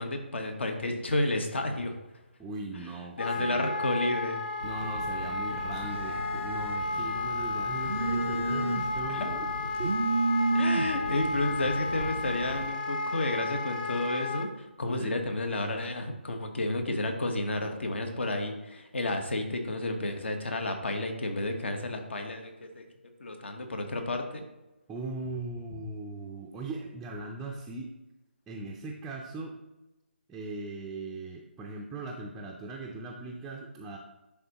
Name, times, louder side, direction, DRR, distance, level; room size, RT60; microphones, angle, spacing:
voice 1, 0.0-1.9 2.7-2.9 3.2-4.4 9.1-9.3 10.5-14.5 14.8-22.8 23.2-24.4, left 2 dB, 65° left, 5 dB, 1.2 m, -31 dB
voice 2, 2.4-3.7 4.6-9.5 9.8-9.9 14.9-15.2 24.9-27.9 28.5-29.5 30.3-34.0, right 3 dB, 5° right, -2 dB, 0.4 m, -39 dB
Wind instrument woodwind instrument, 3.2-14.5, left 3 dB, 40° left, 0.5 m, -33 dB
Telephone, 4.6-12.7, right 3 dB, 80° right, 0.5 m, -33 dB
10.5 x 3.6 x 2.9 m, 0.98 s
figure-of-eight pair, 150°, 7 cm